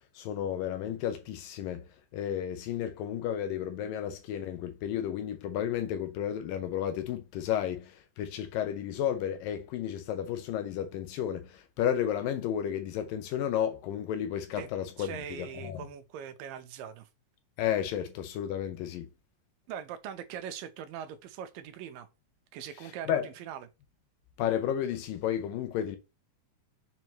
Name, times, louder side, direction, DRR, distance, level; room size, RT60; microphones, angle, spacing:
voice 1, 0.2-1.8 2.1-15.8 17.6-19.1 23.1-23.3 24.4-26.0, left 10 dB, 90° left, 2.6 m, -32 dB
voice 2, 15.0-17.1 19.7-22.1 22.5-23.7, right 9 dB, 85° right, 2.6 m, -41 dB
6.9 x 4.7 x 3.0 m
omnidirectional pair, 3.9 m